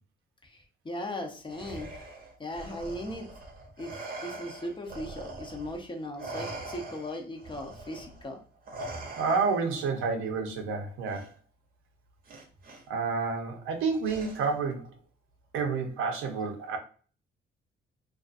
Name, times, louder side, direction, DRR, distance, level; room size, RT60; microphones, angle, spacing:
voice 1, 0.4-1.9 2.4-3.3 3.8-4.0 4.2-8.4, left 1 dB, 25° left, 3 dB, 0.6 m, -38 dB
Respiratory sounds, 1.5-5.8 6.2-9.8 11.1-11.3 12.3-12.8 14.0-14.7, right 2 dB, 45° right, 0.7 m, -42 dB
voice 2, 9.2-11.3 12.9-14.9 15.5-16.8, right 4 dB, 90° right, 4 dB, 0.6 m, -29 dB
2.5 x 2.4 x 2.4 m, 0.40 s
cardioid pair, 90°, 20 cm